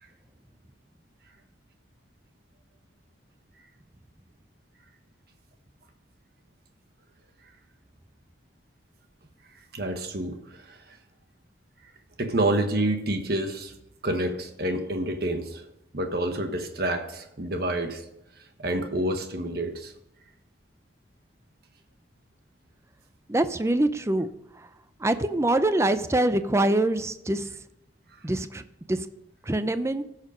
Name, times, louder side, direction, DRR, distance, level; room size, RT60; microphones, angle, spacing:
voice 1, 9.7-11.0 12.2-13.7 14.0-15.6 15.9-18.0 18.6-19.9, right 1 dB, 60° right, 5 dB, 1.4 m, -28 dB
voice 2, 23.3-24.3 25.0-27.5 28.2-28.6 28.9-29.1 29.5-30.0, right 1 dB, 15° right, 11 dB, 0.5 m, -24 dB
15.5 x 6.6 x 5.1 m, 0.85 s
head